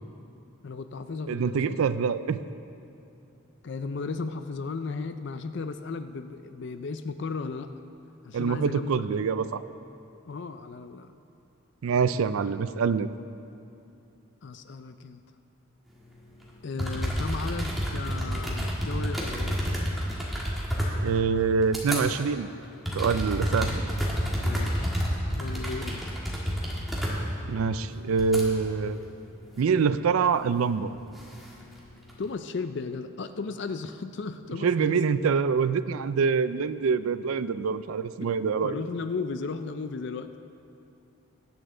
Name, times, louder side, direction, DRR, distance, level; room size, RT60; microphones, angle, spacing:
voice 1, 0.6-1.8 3.6-7.7 8.2-8.9 10.3-11.1 12.1-12.3 14.4-15.2 16.6-19.6 24.4-24.9 25.3-26.2 32.2-35.0 38.6-40.3, left 4 dB, 55° left, 9 dB, 0.4 m, -35 dB
voice 2, 1.3-2.4 8.3-9.6 11.8-13.1 21.0-22.5 22.9-23.8 27.5-29.0 29.6-30.9 34.6-38.8, right 5 dB, 80° right, 14 dB, 0.4 m, -25 dB
sound 1, 16.5-16.6 16.7-22.0 22.5-28.4 29.0-29.5 30.8-32.2, equal, ahead, 1.6 m, -30 dB
20.0 x 8.9 x 3.8 m, 2.7 s
head